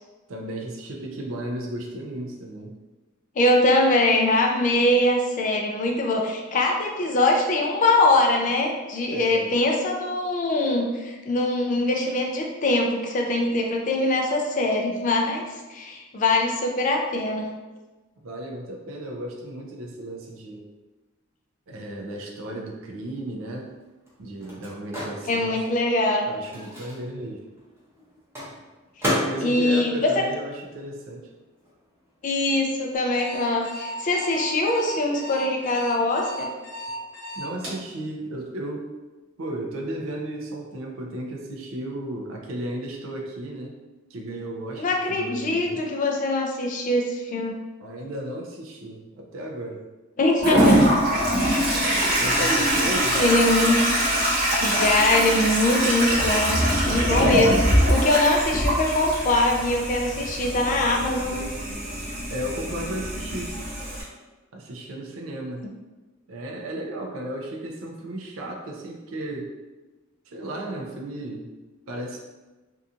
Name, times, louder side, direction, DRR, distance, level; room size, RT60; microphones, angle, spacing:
voice 1, 0.3-2.7 9.1-9.6 18.2-20.7 21.7-23.7 24.2-25.7 26.2-27.4 29.1-31.3 37.4-38.9 39.4-43.8 44.1-45.8 47.8-49.8 52.2-53.2 62.3-63.5 64.5-65.7 66.3-69.5 70.3-71.5 71.9-72.2, right 1 dB, 70° right, 0 dB, 0.5 m, -34 dB
voice 2, 3.4-15.4 15.7-17.5 25.3-26.3 29.4-30.1 32.2-36.5 44.8-47.6 50.2-50.8 53.1-53.9 54.6-56.6 56.9-57.6 57.9-61.5, left 2 dB, 40° left, 1 dB, 0.4 m, -22 dB
Microwave oven, 23.1-31.2 31.5-33.4, equal, 15° right, 0.7 m, -34 dB
Alarm, 33.1-37.8, equal, 90° right, 1.1 m, -35 dB
Toilet flush, 50.4-64.0, equal, 50° right, 0.9 m, -23 dB
2.7 x 2.3 x 2.4 m, 1.2 s
head